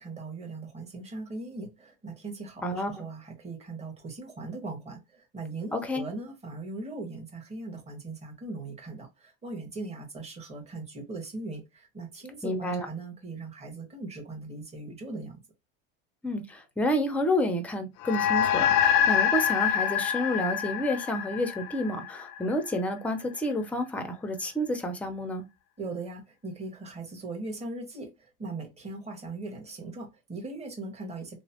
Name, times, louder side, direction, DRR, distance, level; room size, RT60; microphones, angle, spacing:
voice 1, 0.0-15.4 25.8-31.4, right 3 dB, 20° right, 1.3 m, -39 dB
voice 2, 2.6-3.0 5.7-6.0 12.4-12.9 16.2-25.4, left 1 dB, 5° left, 0.5 m, -29 dB
sound 1, 18.0-22.7, left 9 dB, 60° left, 0.4 m, -26 dB
3.0 x 2.0 x 2.8 m
supercardioid pair, 125°, 29 cm